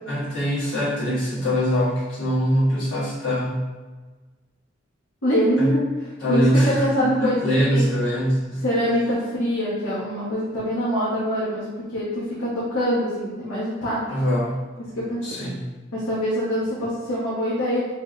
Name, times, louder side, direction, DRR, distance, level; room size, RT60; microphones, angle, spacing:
voice 1, 0.1-3.7 5.6-5.7 6.2-8.6 14.1-14.6 15.2-15.7, equal, 70° left, -9 dB, 1.4 m, -23 dB
voice 2, 5.2-7.9 8.6-11.6 11.9-14.0 15.0-15.2 15.9-17.9, equal, 85° left, -8 dB, 0.9 m, -24 dB
3.4 x 2.1 x 3.7 m, 1.3 s
head